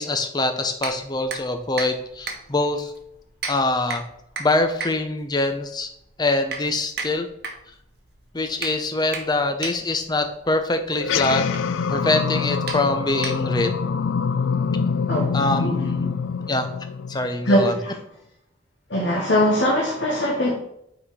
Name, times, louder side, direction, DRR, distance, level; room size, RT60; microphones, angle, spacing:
voice 1, 0.0-2.9 3.5-4.0 4.4-5.9 6.2-7.3 8.3-11.4 11.9-13.7 15.3-16.2 16.5-16.7 17.1-17.7, left 2 dB, 20° left, 7 dB, 0.6 m, -24 dB
sound 1, 0.8-13.8, right 4 dB, 55° right, 1.1 m, -36 dB
sound 2, 10.9-17.7, left 6 dB, 80° left, 0.3 m, -25 dB
voice 2, 15.1-15.8 17.4-18.0 18.9-20.5, equal, 65° left, -2 dB, 1.1 m, -21 dB
5.6 x 4.1 x 4.7 m, 0.76 s
head